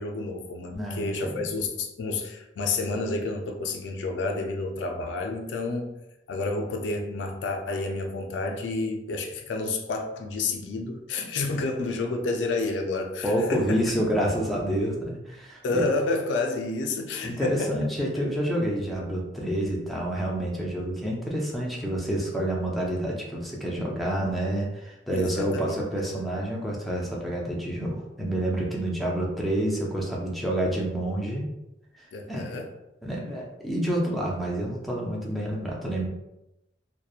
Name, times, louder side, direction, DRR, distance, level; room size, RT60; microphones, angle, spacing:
voice 1, 0.0-6.0 6.3-13.9 15.6-17.8 25.1-25.8 26.2-26.3 32.1-32.7, left 3 dB, 75° left, 4 dB, 0.4 m, -30 dB
voice 2, 0.7-1.4 13.2-15.8 17.2-31.4 32.0-32.5 33.0-36.1, right 1 dB, ahead, -3 dB, 0.4 m, -28 dB
2.7 x 2.0 x 2.3 m, 0.89 s
head